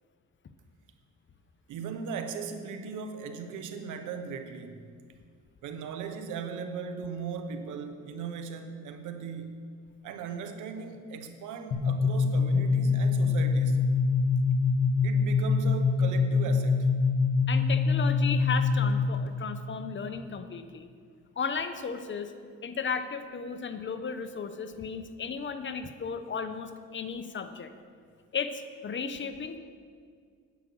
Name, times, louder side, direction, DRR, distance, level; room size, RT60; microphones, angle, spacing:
voice 1, 1.7-4.9 5.6-9.6 10.0-13.8 15.0-16.9, right 5 dB, 85° right, 8 dB, 1.0 m, -38 dB
sound 1, 11.7-19.3, left 4 dB, 75° left, 1.5 m, -25 dB
voice 2, 17.5-20.9 21.4-22.3 22.6-27.7 28.3-29.6, left 5 dB, 40° left, 9 dB, 0.9 m, -35 dB
10.0 x 9.0 x 6.3 m, 2.1 s
cardioid pair, 90°, 30 cm